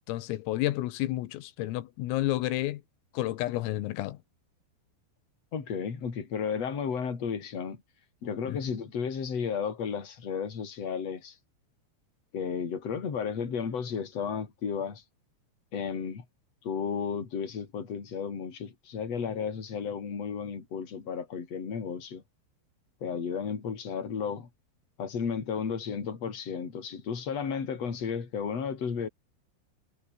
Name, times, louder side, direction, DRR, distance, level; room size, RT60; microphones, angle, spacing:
voice 1, 0.1-2.8 3.2-4.2 8.5-8.6, left 16 dB, 85° left, 4.0 m, -30 dB
voice 2, 5.5-7.8 8.2-11.4 12.3-15.0 15.7-16.2 16.6-22.2 23.0-24.5 25.0-29.1, left 6 dB, 35° left, 4.4 m, -33 dB
omnidirectional pair, 5.9 m